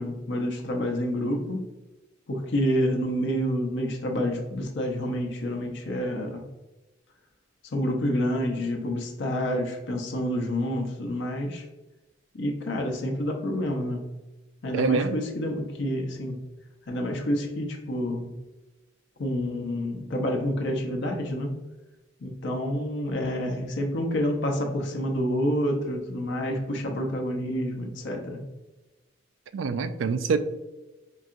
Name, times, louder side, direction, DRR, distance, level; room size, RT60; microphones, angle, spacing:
voice 1, 0.0-1.7 2.3-6.4 7.7-11.7 12.3-14.0 14.6-16.4 16.9-18.4 19.2-21.6 22.2-28.4, equal, 60° left, 0.6 m, -28 dB
voice 2, 14.7-15.2 29.5-30.4, right 5 dB, 70° right, 0.3 m, -25 dB
4.6 x 2.7 x 2.5 m
head